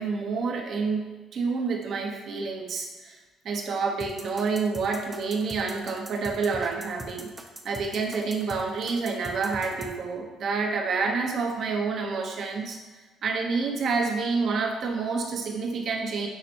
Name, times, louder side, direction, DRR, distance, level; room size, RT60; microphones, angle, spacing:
voice 1, 0.0-7.3 7.6-12.8 13.2-16.3, right 4 dB, 60° right, 2 dB, 1.1 m, -28 dB
sound 1, 4.0-9.9, right 2 dB, 20° right, 0.8 m, -41 dB
10.0 x 4.2 x 3.0 m, 1.2 s
cardioid pair, 90°, 0 cm